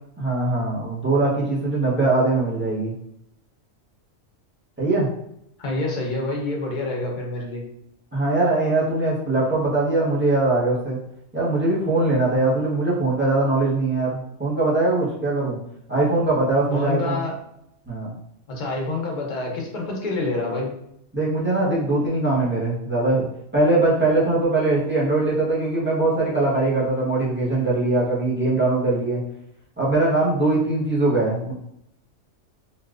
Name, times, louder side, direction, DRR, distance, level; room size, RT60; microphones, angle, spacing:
voice 1, 0.2-2.9 4.8-5.1 8.1-11.0 11.3-15.6 15.9-17.2 17.9-18.1 21.1-23.3 23.5-29.2 29.8-31.5, right 2 dB, 10° right, -8 dB, 0.7 m, -21 dB
voice 2, 5.6-7.6 16.7-17.3 18.5-20.8, left 2 dB, 45° left, -1 dB, 0.7 m, -27 dB
3.3 x 2.4 x 2.4 m, 0.75 s
omnidirectional pair, 1.4 m